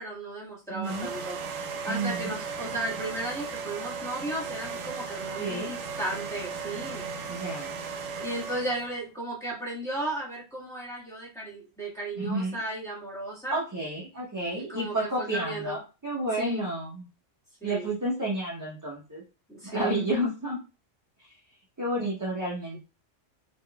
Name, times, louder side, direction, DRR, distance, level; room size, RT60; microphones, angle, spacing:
voice 1, 0.0-1.4 1.8-7.0 8.2-13.6 14.5-15.8 16.4-16.6 17.6-17.9 19.5-20.0, right 1 dB, ahead, -7 dB, 1.3 m, -35 dB
voice 2, 0.7-1.1 1.9-2.3 5.4-5.7 7.3-7.8 12.2-12.6 13.5-17.0 17.6-19.2 19.6-20.6 21.2-21.3 21.8-22.8, right 1 dB, 20° right, -5 dB, 0.6 m, -31 dB
sound 1, 0.8-9.0, right 5 dB, 85° right, 1.0 m, -36 dB
3.6 x 3.0 x 2.3 m, 0.31 s
omnidirectional pair, 1.3 m